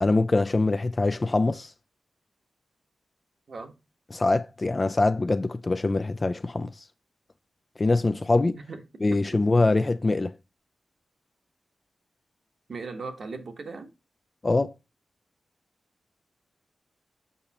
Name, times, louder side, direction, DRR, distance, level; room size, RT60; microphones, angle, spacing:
voice 1, 0.0-1.7 4.1-6.9 7.8-8.6 9.0-10.3 14.4-14.7, left 2 dB, 35° left, 0.3 m, -24 dB
voice 2, 12.7-13.9, right 4 dB, 60° right, 1.2 m, -38 dB
6.7 x 5.3 x 2.9 m
wide cardioid pair, 90°, 0 cm